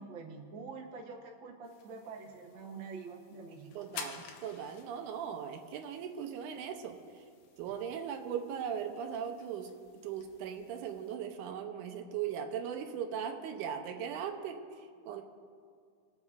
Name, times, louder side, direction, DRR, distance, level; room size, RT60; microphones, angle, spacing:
voice 1, 0.0-3.9, right 4 dB, 65° right, -1 dB, 1.2 m, -46 dB
sound 1, 1.6-11.2, left 6 dB, 75° left, 1.6 m, -52 dB
voice 2, 3.8-7.2 7.6-9.7 10.0-15.2, right 8 dB, 85° right, 5 dB, 2.1 m, -39 dB
23.0 x 8.0 x 2.4 m, 2.1 s
omnidirectional pair, 3.7 m